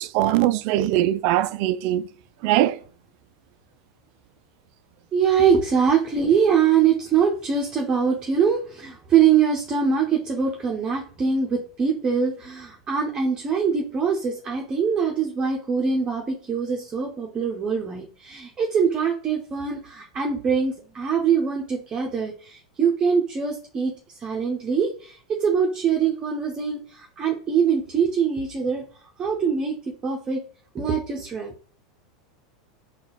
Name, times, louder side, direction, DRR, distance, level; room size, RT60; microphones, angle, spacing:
voice 1, 0.0-2.1 2.4-2.8, right 14 dB, 55° right, 0.3 m, -21 dB
voice 2, 5.1-23.9 24.2-28.8 29.2-30.4 30.7-31.5, right 6 dB, 30° right, 0.7 m, -23 dB
3.9 x 2.3 x 4.0 m
hypercardioid pair, 90°, 3 cm